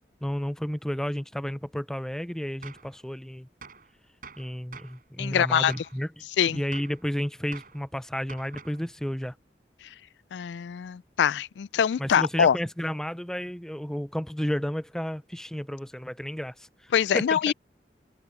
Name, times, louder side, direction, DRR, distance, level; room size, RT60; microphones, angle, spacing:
voice 1, 0.2-3.5 4.4-6.1 6.5-9.3 12.0-17.4, equal, 5° left, 0.4 m, -32 dB
Gunshot gunfire, 2.6-2.9 3.6-3.9 4.2-5.0 5.7-6.0 6.7-7.0 7.5-7.8 8.3-8.8, right 5 dB, 50° right, 5.1 m, -46 dB
voice 2, 5.2-5.7 6.4-6.6 10.3-12.6 16.9-17.5, left 8 dB, 80° left, 0.3 m, -24 dB
head